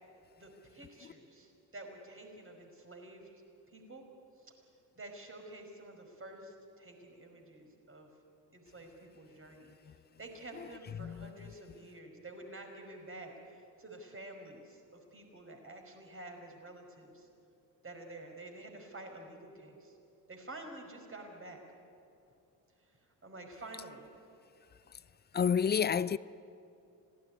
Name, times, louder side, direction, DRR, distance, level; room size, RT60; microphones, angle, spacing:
voice 1, 0.4-3.3 3.7-4.0 4.4-4.5 5.0-8.1 8.5-9.7 10.2-17.3 17.8-20.0 20.3-21.6 22.8-24.1, right 2 dB, 25° right, 5.4 m, -49 dB
voice 2, 11.0-11.3 25.3-26.2, left 7 dB, 20° left, 0.5 m, -29 dB
26.0 x 17.5 x 9.9 m
figure-of-eight pair, 45°, 46 cm